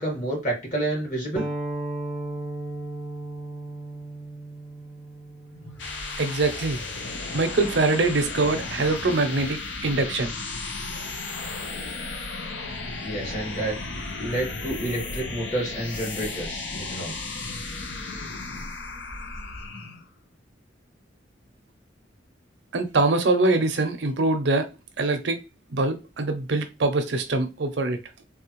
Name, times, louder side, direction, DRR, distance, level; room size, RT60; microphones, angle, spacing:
voice 1, 0.0-1.4 13.0-13.7 14.2-17.2, right 1 dB, 40° left, 1.4 m, -29 dB
sound 1, 1.4-6.6, right 2 dB, 5° right, 0.5 m, -35 dB
sound 2, 5.5-20.1, left 3 dB, 75° left, 0.7 m, -34 dB
voice 2, 6.2-6.8 7.3-10.3 22.7-24.7 25.0-25.4 25.7-28.0, right 2 dB, 65° right, 0.5 m, -23 dB
3.4 x 2.3 x 2.9 m
head